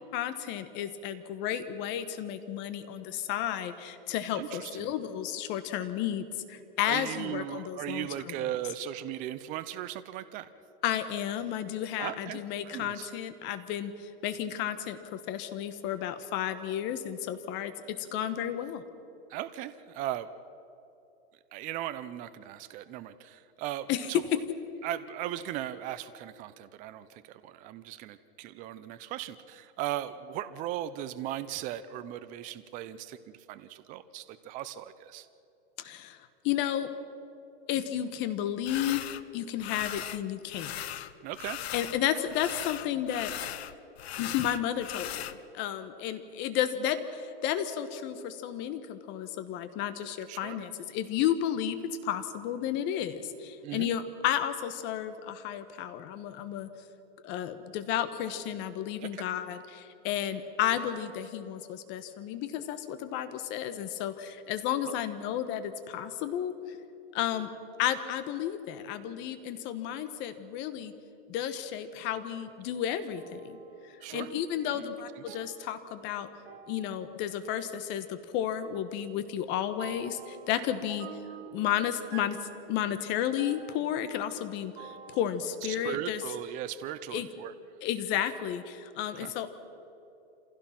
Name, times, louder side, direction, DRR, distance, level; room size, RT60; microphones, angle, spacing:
voice 1, 0.1-8.5 10.8-17.7 18.0-18.8 23.9-24.1 35.8-36.2 36.4-36.9 37.7-39.0 39.3-40.7 41.7-43.5 44.2-45.3 45.5-51.8 52.0-56.7 57.2-66.8 67.1-67.5 67.8-70.9 71.3-76.3 76.7-81.1 81.5-86.2 87.1-87.3 87.8-89.5, left 10 dB, 35° left, 10 dB, 1.3 m, -32 dB
voice 2, 4.3-4.9 6.9-10.5 12.0-13.1 19.3-20.3 21.5-24.2 24.8-35.3 41.2-41.6 50.3-50.6 53.6-53.9 59.0-59.3 64.8-65.0 74.0-74.3 74.6-74.9 75.3-75.4 85.7-87.5 89.2-89.3, right 12 dB, 25° right, 12 dB, 0.6 m, -38 dB
sound 1, 38.7-39.2 39.6-40.2 40.5-42.0 42.3-45.4, left 12 dB, 70° left, 1.0 m, -38 dB
sound 2, 73.1-78.5 79.8-85.3, right 9 dB, 50° right, 2.5 m, -50 dB
27.0 x 16.0 x 5.9 m, 2.7 s
hypercardioid pair, 145°, 32 cm